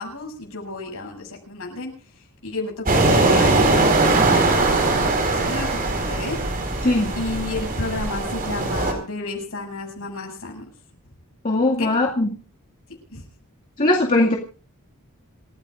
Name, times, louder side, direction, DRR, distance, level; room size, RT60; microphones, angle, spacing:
voice 1, 0.0-1.9 2.4-6.4 7.2-10.6 11.8-11.9 13.1-13.2, left 3 dB, 65° left, 1 dB, 7.8 m, -31 dB
sound 1, 2.9-8.9, right 3 dB, 40° right, 4.8 m, -20 dB
voice 2, 11.4-12.3 13.8-14.3, left 2 dB, 40° left, -2 dB, 2.3 m, -19 dB
28.0 x 16.0 x 2.6 m, 0.36 s
head